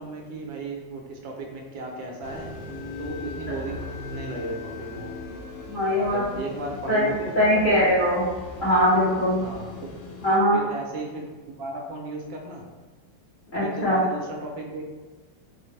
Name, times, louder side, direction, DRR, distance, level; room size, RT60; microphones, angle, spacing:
voice 1, 0.0-2.5 3.0-5.2 6.0-8.0 9.4-9.9 10.5-12.6 13.6-14.9, right 2 dB, 75° right, 1 dB, 1.3 m, -35 dB
sound 1, 2.2-10.4, left 3 dB, 75° left, 1.2 m, -39 dB
voice 2, 5.7-6.2 6.9-7.1 7.3-8.2 8.6-9.4 10.2-10.6 13.5-14.0, equal, 30° left, -9 dB, 1.1 m, -21 dB
4.0 x 2.1 x 3.1 m, 1.3 s
omnidirectional pair, 2.1 m